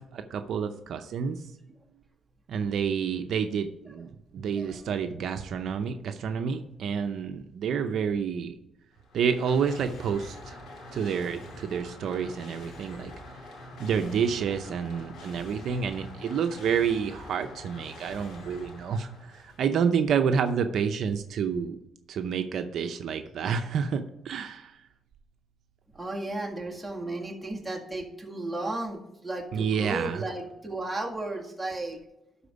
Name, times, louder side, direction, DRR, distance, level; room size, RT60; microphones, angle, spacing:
voice 1, 0.0-1.4 2.5-8.5 9.1-10.6 10.9-13.4 13.8-21.8 22.1-24.8 29.5-30.2, right 7 dB, 70° right, 8 dB, 0.6 m, -29 dB
sound 1, 8.9-19.8, left 1 dB, 75° left, 2.6 m, -45 dB
voice 2, 25.9-32.0, right 2 dB, 10° right, -1 dB, 1.8 m, -34 dB
12.0 x 4.3 x 5.1 m, 0.90 s
cardioid pair, 90°, 0 cm